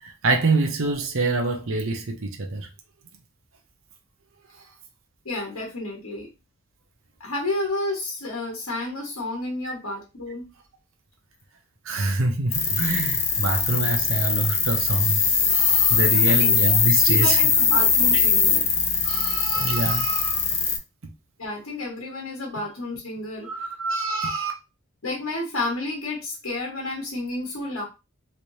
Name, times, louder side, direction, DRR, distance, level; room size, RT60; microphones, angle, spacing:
voice 1, 0.0-2.7 4.6-4.7 9.6-9.7 11.8-15.2 15.5-17.4 19.0-20.4 23.4-24.5, right 2 dB, 65° right, 0.7 m, -25 dB
voice 2, 5.2-6.3 7.2-10.4 16.1-16.5 17.1-18.7 21.4-23.7 25.0-27.8, left 2 dB, 75° left, 1.2 m, -31 dB
sound 1, 12.5-20.8, left 5 dB, 30° left, 0.7 m, -21 dB
3.2 x 3.1 x 2.7 m
head